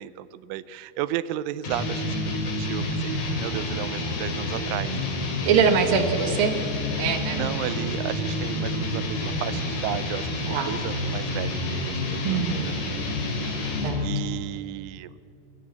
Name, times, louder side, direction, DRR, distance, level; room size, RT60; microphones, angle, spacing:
voice 1, 0.0-2.9 3.4-4.9 7.3-13.0 13.5-15.1, right 13 dB, 85° right, 16 dB, 3.1 m, -34 dB
sound 1, 1.6-14.2, left 2 dB, 60° left, 4.4 m, -29 dB
voice 2, 5.5-6.6 7.0-7.6 10.5-10.7 12.2-12.7 13.8-14.1, right 6 dB, 65° right, 7 dB, 2.4 m, -23 dB
23.5 x 13.5 x 8.4 m, 2.6 s
omnidirectional pair, 5.4 m